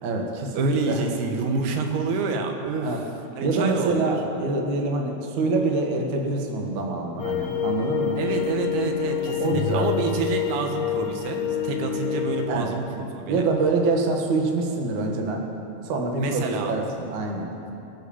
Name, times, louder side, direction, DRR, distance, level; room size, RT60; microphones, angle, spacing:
voice 1, 0.0-1.0 2.8-3.0 3.4-8.2 9.3-9.9 12.5-12.7 13.3-15.5 15.8-17.5, right 3 dB, 65° right, 1 dB, 1.9 m, -25 dB
voice 2, 0.5-3.0 3.4-4.2 8.2-13.5 16.2-16.7, right 4 dB, 85° right, 4 dB, 4.1 m, -28 dB
sound 1, 7.2-12.5, left 9 dB, 65° left, 3.1 m, -27 dB
21.0 x 9.6 x 7.1 m, 2.8 s
omnidirectional pair, 5.9 m